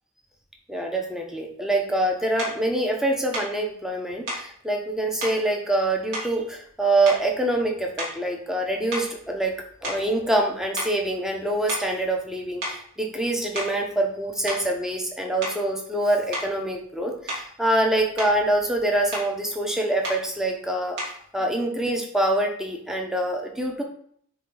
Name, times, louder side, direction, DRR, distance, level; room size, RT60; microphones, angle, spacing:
voice 1, 0.7-9.5 9.8-21.0 21.3-23.8, right 1 dB, ahead, 1 dB, 1.1 m, -25 dB
sound 1, 2.4-2.6 3.3-3.6 4.3-4.5 5.2-5.4 6.1-6.7 7.0-7.4 7.9-8.3 8.9-10.5 10.8-11.0 11.7-12.0 12.6-12.8 13.4-13.8 14.5-14.7 15.4-15.7 16.3-16.5 17.3-17.6 17.9-18.4 19.1-19.3 20.0-20.3 21.0-21.2, right 1 dB, 55° right, 3.2 m, -33 dB
9.2 x 3.8 x 4.0 m, 0.63 s
head